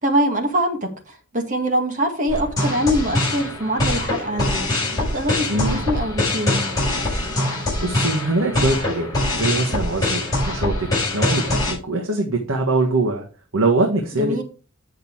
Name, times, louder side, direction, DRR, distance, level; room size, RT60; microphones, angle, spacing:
voice 1, 0.0-6.6 14.1-14.4, equal, 35° right, 2.0 m, -24 dB
sound 1, 2.3-11.7, left 2 dB, 15° left, 5.9 m, -23 dB
voice 2, 7.8-9.1 9.3-13.2 13.5-14.4, right 2 dB, 60° right, 1.6 m, -22 dB
8.9 x 6.6 x 4.7 m
head